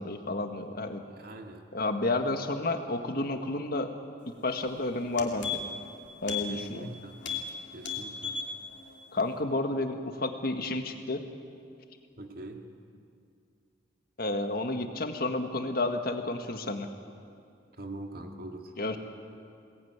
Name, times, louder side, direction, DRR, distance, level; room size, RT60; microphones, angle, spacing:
voice 1, 0.0-1.0 1.7-3.9 4.3-5.6 6.2-6.9 9.1-11.2 14.2-16.9 18.8-19.0, left 2 dB, 50° left, 6 dB, 1.8 m, -31 dB
voice 2, 1.0-1.7 6.5-7.2 7.7-8.4 12.2-12.7 17.8-18.8, right 2 dB, 50° right, 4 dB, 2.2 m, -43 dB
sound 1, 4.6-4.7 5.0-5.9 6.2-6.5 6.8-6.9 7.2-7.5 7.8-8.5 8.9-9.0, left 7 dB, 70° left, 2.7 m, -34 dB
22.0 x 19.0 x 9.6 m, 2.4 s
head